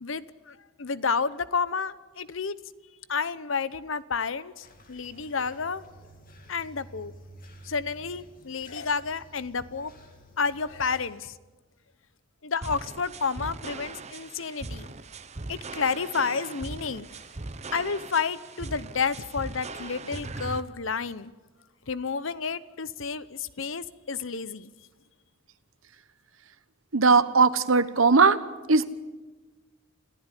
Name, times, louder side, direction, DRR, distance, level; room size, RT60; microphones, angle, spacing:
voice 1, 0.0-2.6 3.1-5.8 6.5-7.1 7.6-9.9 10.4-11.3 12.4-14.9 15.5-17.1 17.7-21.3 21.9-24.7, left 5 dB, 70° left, 16 dB, 0.9 m, -30 dB
sound 1, 4.6-11.0, equal, 45° left, 3.1 m, -51 dB
sound 2, 12.6-20.6, right 3 dB, 35° right, 0.9 m, -39 dB
voice 2, 26.9-28.4 28.7-28.9, right 4 dB, 75° right, 14 dB, 1.2 m, -19 dB
28.0 x 15.0 x 10.0 m, 1.2 s
head